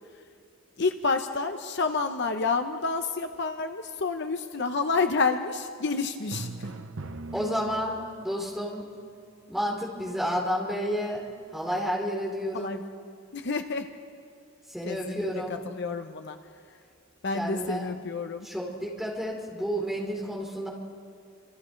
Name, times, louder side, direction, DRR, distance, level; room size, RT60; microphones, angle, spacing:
voice 1, 0.8-6.5 12.5-12.8 13.3-13.9 14.9-15.2 15.5-16.4 17.2-18.5, left 4 dB, 55° left, 6 dB, 0.8 m, -29 dB
Drum, 6.3-8.3, right 2 dB, 65° right, 0.8 m, -38 dB
voice 2, 7.3-8.8 9.5-12.8 14.7-15.6 17.3-18.0 18.4-20.7, equal, ahead, -3 dB, 3.9 m, -31 dB
30.0 x 27.0 x 3.3 m, 2.3 s
head